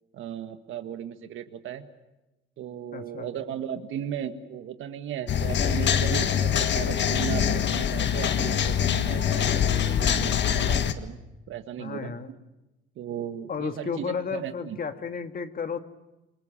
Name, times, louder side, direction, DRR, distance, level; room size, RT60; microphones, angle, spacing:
voice 1, 0.1-1.8 2.6-11.2 11.5-12.1 13.0-14.8, right 9 dB, 80° right, 8 dB, 1.9 m, -36 dB
voice 2, 2.9-3.3 11.8-12.3 13.5-15.8, left 6 dB, 45° left, 7 dB, 1.9 m, -33 dB
sound 1, 5.3-10.9, left 8 dB, 65° left, 1.6 m, -24 dB
28.0 x 23.0 x 7.5 m, 1.0 s
cardioid pair, 90°, 20 cm